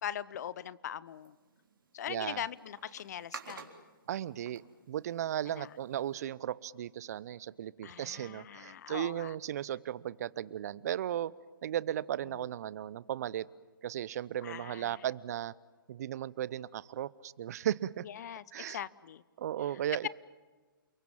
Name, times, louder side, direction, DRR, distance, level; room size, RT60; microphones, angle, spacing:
voice 1, 0.0-1.4 1.9-3.7 5.5-5.7 7.8-9.3 12.3-12.5 14.4-15.0 18.0-19.2 20.0-20.1, left 10 dB, 50° left, 20 dB, 0.8 m, -41 dB
sound 1, 1.1-6.2, right 5 dB, 70° right, 3.7 m, -52 dB
voice 2, 2.1-2.4 4.1-4.6 4.9-11.3 11.6-13.5 13.8-15.5 15.9-18.1 18.5-18.8 19.4-20.1, right 11 dB, 45° right, 21 dB, 0.8 m, -36 dB
29.5 x 23.0 x 7.4 m, 1.3 s
figure-of-eight pair, 130°, 12 cm